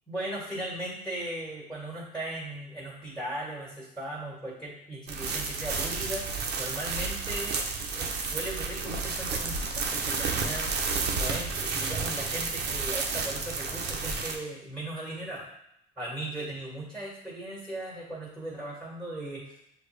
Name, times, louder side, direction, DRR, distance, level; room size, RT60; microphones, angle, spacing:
voice 1, 0.1-6.3 6.6-7.6 7.9-10.8 11.1-15.5 16.0-19.6, right 1 dB, ahead, -5 dB, 1.8 m, -38 dB
sound 1, 5.1-14.4, right 4 dB, 60° right, 0.8 m, -31 dB
6.5 x 2.4 x 3.2 m, 0.76 s
supercardioid pair, 75°, 19 cm